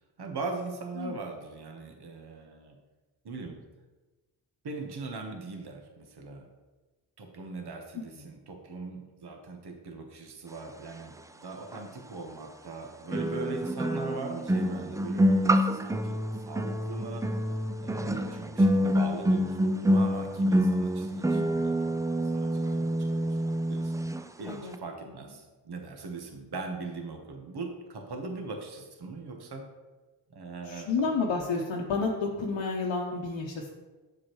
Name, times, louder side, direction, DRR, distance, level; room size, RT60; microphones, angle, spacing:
voice 1, 0.2-2.8 3.2-3.6 4.6-6.5 7.2-11.1 11.4-17.3 17.8-23.4 23.7-23.9 24.4-29.6 30.3-31.1, right 3 dB, 55° right, 3 dB, 1.3 m, -40 dB
sound 1, 11.7-11.8 13.1-24.2 24.5-24.7, equal, 10° right, 0.3 m, -27 dB
voice 2, 24.5-24.8 30.7-33.7, left 4 dB, 75° left, -2 dB, 1.0 m, -30 dB
7.3 x 6.6 x 3.1 m, 1.2 s
cardioid pair, 55°, 47 cm